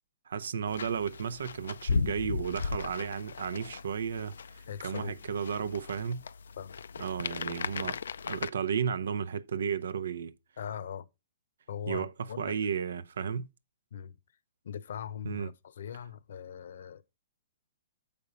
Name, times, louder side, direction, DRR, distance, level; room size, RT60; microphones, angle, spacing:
voice 1, 0.3-6.2 7.0-8.0 8.3-10.3 11.9-12.1 12.4-13.5 15.2-15.5, right 7 dB, 80° right, 0.7 m, -33 dB
sound 1, 0.7-8.5, left 5 dB, 90° left, 0.4 m, -37 dB
voice 2, 4.6-5.2 6.6-6.7 10.6-11.1 11.7-12.6 13.9-14.2 14.6-17.0, left 8 dB, 65° left, 0.8 m, -40 dB
6.9 x 5.3 x 5.1 m
hypercardioid pair, 160°, 0 cm